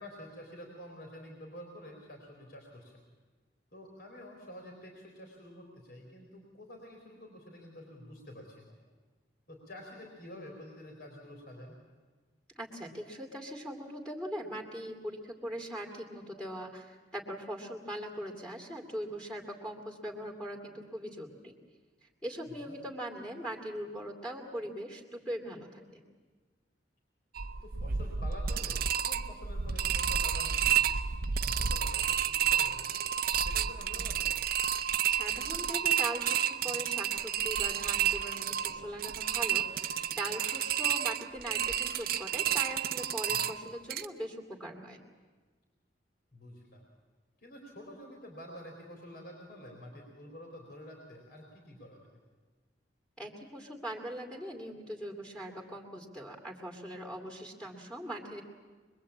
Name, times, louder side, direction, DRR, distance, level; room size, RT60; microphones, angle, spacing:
voice 1, 0.0-2.9 3.7-8.8 9.5-11.8 22.4-22.8 27.6-30.9 31.4-32.9 33.3-34.4 43.3-43.6 46.3-46.9 47.4-52.2, equal, 60° left, 0 dB, 4.1 m, -49 dB
voice 2, 12.6-21.5 22.2-26.0 35.0-45.0 53.2-58.4, right 1 dB, 5° left, 2 dB, 2.6 m, -41 dB
sound 1, 27.3-44.1, right 8 dB, 55° right, 0.7 m, -31 dB
25.5 x 22.0 x 8.6 m, 1.4 s
head